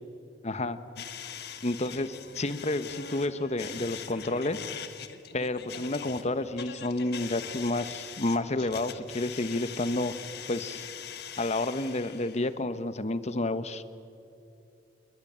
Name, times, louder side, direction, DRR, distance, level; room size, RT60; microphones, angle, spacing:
voice 1, 0.4-0.8 1.6-4.6 5.3-10.1 10.5-10.9 11.4-13.8, left 2 dB, 40° left, 12 dB, 1.1 m, -30 dB
sound 1, 1.0-12.5, left 7 dB, 65° left, 1.5 m, -42 dB
28.0 x 22.0 x 8.8 m, 2.7 s
head